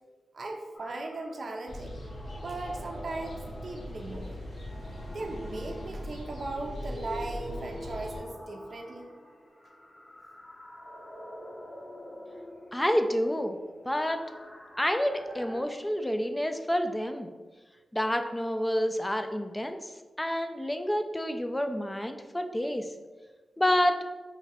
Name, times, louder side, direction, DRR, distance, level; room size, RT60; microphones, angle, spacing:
voice 1, 0.3-2.0 2.4-4.4 5.1-9.1, right 2 dB, 60° right, 1 dB, 0.5 m, -38 dB
sound 1, 0.7-15.6, left 1 dB, 40° left, 0.8 m, -46 dB
sound 2, 1.7-8.2, equal, 70° left, 0.8 m, -41 dB
voice 2, 12.7-13.6 13.8-14.2 14.8-17.3 17.9-19.8 20.2-22.9 23.6-24.0, equal, 15° left, 6 dB, 0.4 m, -28 dB
3.1 x 2.5 x 4.1 m, 1.3 s
cardioid pair, 45°, 0 cm